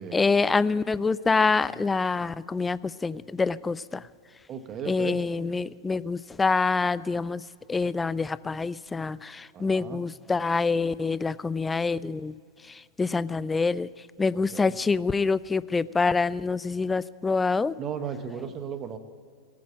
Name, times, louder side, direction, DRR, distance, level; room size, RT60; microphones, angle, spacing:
voice 1, 0.1-4.0 4.9-7.4 7.7-12.3 12.7-13.9 14.2-17.7, left 4 dB, 10° left, 19 dB, 0.4 m, -26 dB
voice 2, 4.5-5.2 9.5-10.0 14.3-14.7 17.8-19.0, right 7 dB, 30° right, 10 dB, 1.3 m, -35 dB
18.5 x 8.4 x 8.9 m, 2.2 s
figure-of-eight pair, 95°, 0 cm